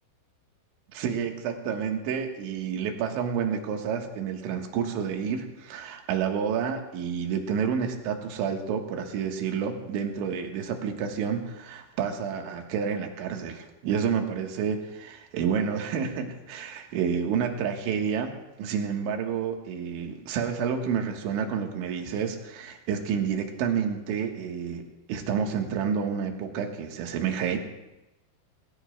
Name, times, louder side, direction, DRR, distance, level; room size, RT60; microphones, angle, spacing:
voice 1, 0.9-18.3 18.6-27.6, right 7 dB, 75° right, 3 dB, 3.6 m, -29 dB
21.5 x 18.0 x 2.3 m, 0.99 s
omnidirectional pair, 5.7 m